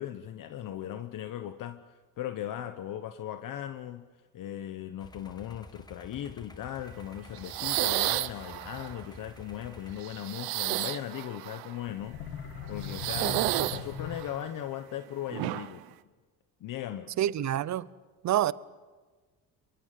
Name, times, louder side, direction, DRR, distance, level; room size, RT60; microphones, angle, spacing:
voice 1, 0.0-4.1 4.3-12.2 12.7-15.8 16.6-17.1, left 11 dB, 65° left, 1.2 m, -38 dB
sound 1, 5.0-10.0, left 2 dB, 10° left, 1.4 m, -50 dB
sound 2, 7.4-9.0 10.0-11.8 12.8-14.5 15.3-15.8, right 17 dB, 90° right, 0.9 m, -31 dB
sound 3, 11.9-14.7, left 6 dB, 85° left, 2.6 m, -40 dB
voice 2, 17.2-17.9 18.2-18.5, right 12 dB, 50° right, 0.8 m, -27 dB
27.5 x 23.5 x 7.8 m
cardioid pair, 115°, 35 cm